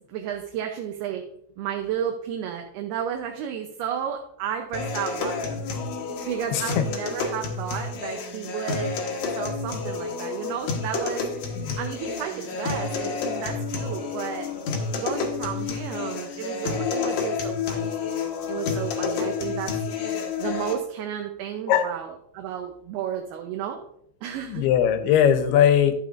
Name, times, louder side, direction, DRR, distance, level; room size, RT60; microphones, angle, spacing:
voice 1, 0.1-1.2 1.6-5.6 6.2-9.0 9.3-14.5 14.9-19.8 20.0-23.8 24.2-24.7, right 9 dB, 80° right, 3 dB, 2.6 m, -33 dB
sound 1, 4.7-20.7, left 5 dB, 65° left, 1.7 m, -30 dB
voice 2, 24.4-25.9, left 9 dB, 85° left, 9 dB, 2.7 m, -20 dB
12.0 x 8.3 x 2.5 m, 0.71 s
omnidirectional pair, 4.6 m